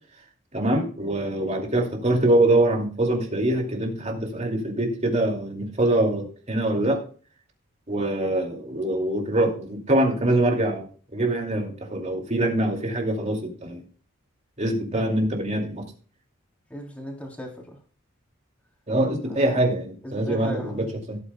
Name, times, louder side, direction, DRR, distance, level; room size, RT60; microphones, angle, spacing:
voice 1, 0.5-7.0 7.9-10.8 11.1-13.8 14.6-15.8 18.9-21.2, right 1 dB, 30° right, 2.5 m, -24 dB
voice 2, 16.7-17.8 19.2-19.5 20.0-20.9, equal, 5° left, 3.2 m, -37 dB
17.0 x 9.0 x 2.2 m
head